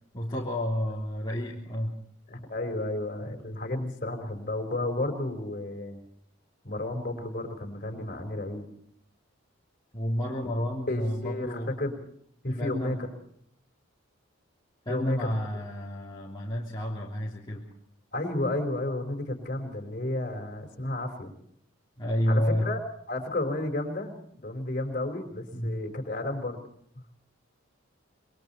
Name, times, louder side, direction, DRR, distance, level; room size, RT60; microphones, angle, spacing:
voice 1, 0.1-2.0 3.2-3.3 9.9-11.8 12.5-13.0 14.8-17.7 22.0-22.7 25.5-25.8, equal, 20° left, -5 dB, 3.2 m, -30 dB
voice 2, 2.3-6.0 6.6-8.7 10.9-12.0 12.4-13.0 14.9-15.3 18.1-21.3 22.3-22.8 23.1-26.6, left 1 dB, 40° left, 4 dB, 4.7 m, -32 dB
27.0 x 22.5 x 4.4 m, 0.67 s
head